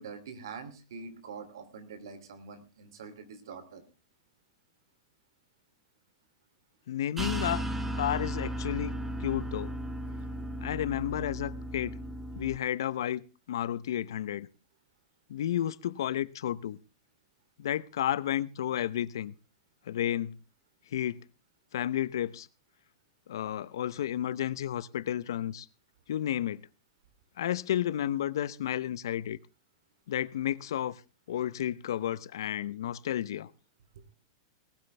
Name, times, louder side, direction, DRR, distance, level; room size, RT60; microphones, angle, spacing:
voice 1, 0.0-3.8 33.9-34.0, right 5 dB, 85° right, 3.0 m, -45 dB
voice 2, 6.9-7.6 7.9-9.7 10.6-12.0 12.4-14.5 15.3-16.8 17.6-19.3 19.9-20.4 20.9-21.2 21.7-22.5 23.3-25.7 26.1-26.6 27.4-29.4 30.1-31.0 31.3-33.5, left 11 dB, 85° left, 0.8 m, -32 dB
sound 1, 7.2-12.6, right 1 dB, 10° right, 1.4 m, -35 dB
19.0 x 13.0 x 3.4 m
supercardioid pair, 145°, 2 cm